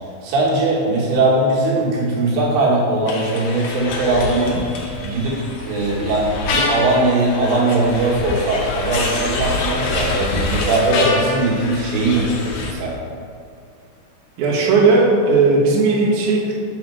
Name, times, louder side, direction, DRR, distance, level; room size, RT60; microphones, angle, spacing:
voice 1, 0.2-4.6 5.0-13.0, right 2 dB, 85° right, -4 dB, 3.7 m, -19 dB
sound 1, 3.1-12.7, left 2 dB, 85° left, 1.8 m, -25 dB
voice 2, 14.4-16.5, right 3 dB, 60° right, -5 dB, 2.2 m, -16 dB
7.1 x 6.0 x 4.4 m, 2.2 s
omnidirectional pair, 5.0 m